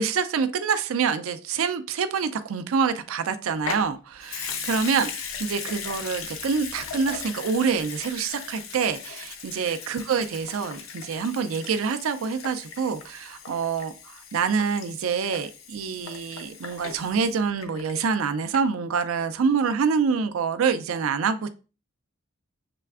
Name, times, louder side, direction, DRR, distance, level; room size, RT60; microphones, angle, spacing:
voice 1, 0.0-21.5, right 5 dB, 80° right, 10 dB, 0.4 m, -26 dB
Water tap faucet / Sink (filling or washing) / Liquid, 3.6-18.2 18.5-18.6, left 6 dB, 75° left, 0.6 m, -38 dB
6.7 x 3.2 x 2.4 m, 0.33 s
head